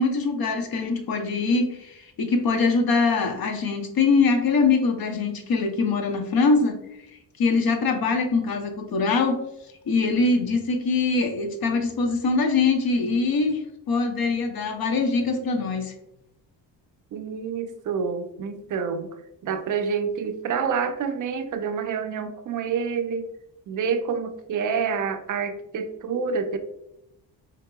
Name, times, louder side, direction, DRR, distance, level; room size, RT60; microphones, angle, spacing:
voice 1, 0.0-6.8 7.4-9.4 9.9-13.6 13.9-15.9, left 4 dB, 55° left, 4 dB, 0.7 m, -23 dB
voice 2, 17.1-19.1 19.4-23.3 23.7-26.6, right 6 dB, 45° right, 8 dB, 0.4 m, -28 dB
3.9 x 2.7 x 2.2 m, 0.84 s
cardioid pair, 75°, 44 cm